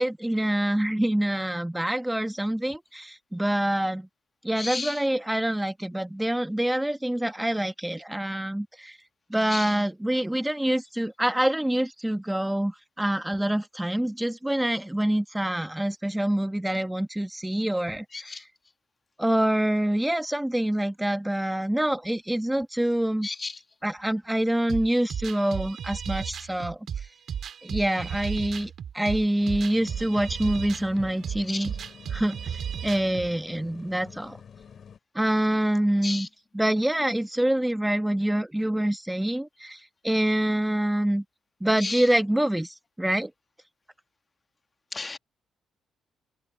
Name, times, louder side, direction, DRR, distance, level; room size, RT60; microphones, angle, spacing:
voice 1, 0.0-4.1 4.4-9.0 9.3-18.4 19.2-23.3 23.8-27.1 27.6-31.8 32.1-34.4 35.1-36.3 36.5-41.2 41.6-43.3, right 1 dB, 5° right, 1.0 m, -26 dB
voice 2, 4.6-4.9 9.5-9.7 18.1-18.4 23.2-23.5 31.5-31.6 36.0-36.3 41.8-42.0 44.9-45.2, left 3 dB, 25° left, 1.2 m, -33 dB
sound 1, 24.7-33.3, right 8 dB, 60° right, 4.0 m, -34 dB
sound 2, 29.4-35.0, left 7 dB, 55° left, 2.9 m, -48 dB
open air
cardioid pair, 90°, 0 cm